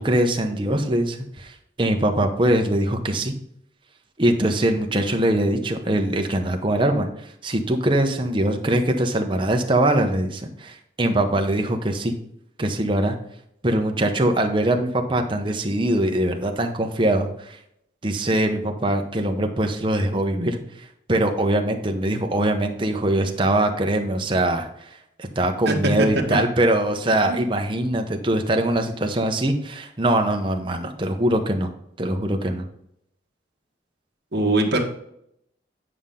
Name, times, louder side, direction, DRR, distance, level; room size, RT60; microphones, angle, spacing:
voice 1, 0.0-3.3 4.2-7.1 7.4-12.1 12.6-13.1 13.6-17.6 18.0-20.6 21.1-24.9 25.2-31.7 32.0-32.7, right 1 dB, 25° right, 4 dB, 0.8 m, -22 dB
voice 2, 25.6-26.4 27.2-27.4 34.3-34.8, right 2 dB, 55° right, 0 dB, 1.4 m, -22 dB
9.5 x 5.6 x 3.7 m, 0.75 s
head